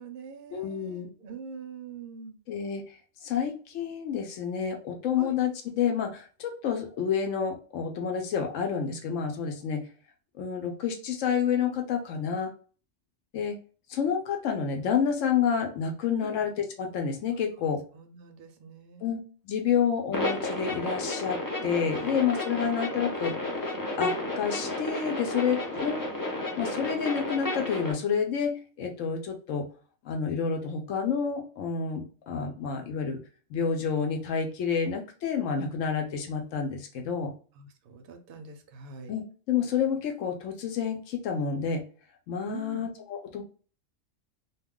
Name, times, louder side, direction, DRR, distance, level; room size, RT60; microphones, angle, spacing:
voice 1, 0.0-2.4 5.2-5.4 16.2-16.4 17.6-19.1 22.0-22.2 22.6-22.8 25.7-25.8 37.6-39.1 42.5-42.8, right 5 dB, 60° right, 5 dB, 0.6 m, -44 dB
voice 2, 0.5-1.1 2.5-2.8 3.2-9.9 10.4-12.5 13.3-13.6 13.9-17.8 19.0-19.2 19.4-23.4 23.9-26.0 26.6-29.7 30.0-33.2 33.5-37.3 39.1-41.8 42.3-43.4, left 7 dB, 75° left, 4 dB, 0.9 m, -29 dB
sound 1, 20.1-27.9, left 2 dB, 35° left, 0.3 m, -32 dB
2.4 x 2.2 x 3.6 m, 0.39 s
omnidirectional pair, 1.3 m